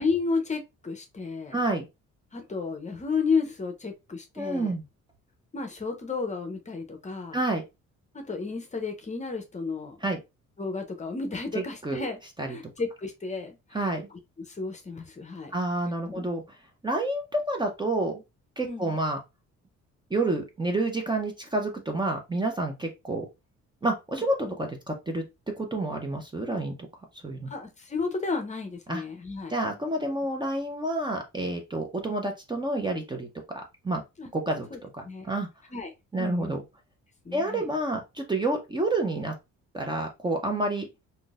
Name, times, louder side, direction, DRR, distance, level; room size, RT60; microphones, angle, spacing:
voice 1, 0.0-1.6 2.3-4.7 5.5-7.4 8.1-10.0 10.6-12.2 12.5-13.9 14.4-15.5 16.1-16.3 18.6-18.9 24.4-24.6 27.5-29.5 34.2-34.3 34.7-35.4 35.7-36.6 37.2-37.7, left 4 dB, 25° left, 0.7 m, -32 dB
voice 2, 1.5-1.9 4.4-4.8 7.3-7.6 10.0-10.2 11.5-12.1 12.4-12.6 13.7-14.1 15.5-16.4 16.8-18.2 18.6-19.2 20.1-23.3 23.8-25.2 25.6-26.8 27.2-27.5 28.9-29.0 29.5-33.3 33.8-34.0 34.3-35.5 36.1-36.6 37.3-39.3 39.7-40.9, right 2 dB, 15° right, 0.6 m, -29 dB
3.7 x 2.6 x 2.4 m
cardioid pair, 100°, 30 cm